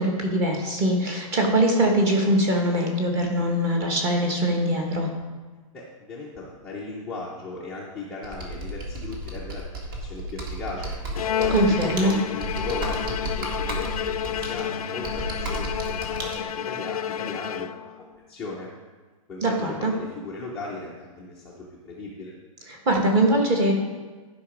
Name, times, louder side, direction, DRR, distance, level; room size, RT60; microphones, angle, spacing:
voice 1, 0.0-5.1 11.5-12.1 19.4-19.9 22.7-23.7, right 1 dB, 20° right, 1 dB, 1.2 m, -22 dB
voice 2, 5.7-10.9 11.4-18.7 19.3-22.3, left 3 dB, 5° left, -7 dB, 0.6 m, -37 dB
Computer keyboard, 8.2-16.4, right 1 dB, 40° right, 1.7 m, -33 dB
Bowed string instrument, 11.1-18.1, left 9 dB, 85° left, 0.5 m, -30 dB
11.5 x 5.2 x 5.0 m, 1.4 s
hypercardioid pair, 175°, 18 cm